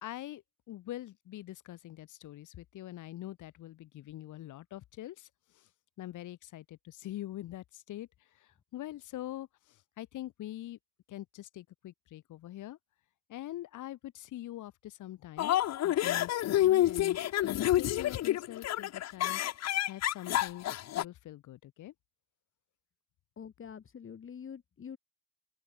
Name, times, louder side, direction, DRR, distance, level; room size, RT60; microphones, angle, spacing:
voice 1, 0.0-5.3 5.5-5.7 6.0-8.1 8.3-10.8 11.1-12.8 13.3-15.6 15.8-17.2 17.4-19.4 19.8-20.7 21.0-21.9, left 14 dB, 80° left, 2.4 m, -44 dB
sound 1, 15.4-21.0, left 13 dB, 60° left, 0.7 m, -28 dB
voice 2, 23.4-25.0, left 7 dB, 45° left, 2.0 m, -46 dB
open air
cardioid pair, 90°, 30 cm